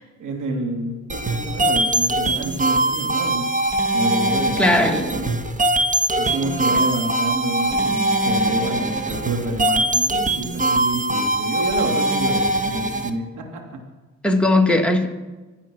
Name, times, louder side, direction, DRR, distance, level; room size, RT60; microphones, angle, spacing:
voice 1, 0.2-1.0 1.3-3.4 3.9-5.3 6.2-13.8, right 2 dB, 85° right, 2 dB, 2.6 m, -28 dB
sound 1, 1.1-13.1, right 1 dB, 25° right, 1.5 m, -22 dB
voice 2, 4.6-5.2 14.2-15.1, left 2 dB, 5° left, 1 dB, 2.1 m, -18 dB
25.5 x 8.8 x 6.2 m, 1.2 s
cardioid pair, 90°, 30 cm